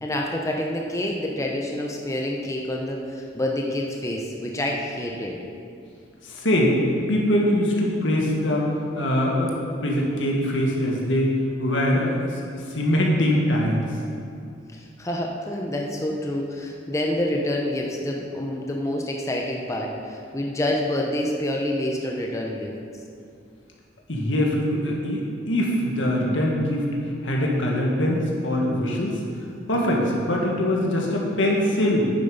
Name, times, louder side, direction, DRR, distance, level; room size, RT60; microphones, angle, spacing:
voice 1, 0.0-5.4 14.7-22.8, left 1 dB, 15° left, 0 dB, 0.7 m, -27 dB
voice 2, 6.2-6.8 7.1-8.7 8.9-9.6 9.8-11.3 11.6-13.9 24.1-26.9 27.2-29.2 29.7-32.1, left 1 dB, 85° left, -2 dB, 1.8 m, -23 dB
9.5 x 7.4 x 5.3 m, 2.4 s
head